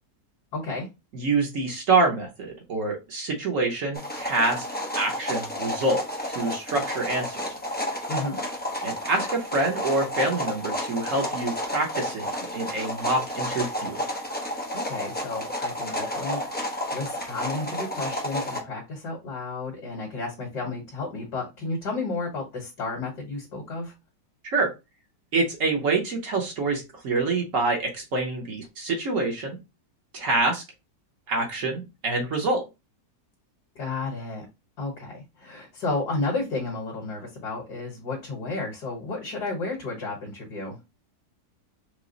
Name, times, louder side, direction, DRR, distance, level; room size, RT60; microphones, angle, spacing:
voice 1, 0.5-0.9 8.1-8.4 14.7-23.9 33.8-34.5 34.8-40.8, left 3 dB, 65° left, -1 dB, 1.9 m, -32 dB
voice 2, 1.1-4.6 4.9-7.4 8.8-14.0 24.4-24.7 25.3-29.6 30.1-30.6 31.3-32.6, right 3 dB, 55° right, 1 dB, 1.2 m, -26 dB
sound 1, 3.9-18.6, equal, 15° left, 0.3 m, -31 dB
4.9 x 2.1 x 3.9 m, 0.25 s
omnidirectional pair, 1.8 m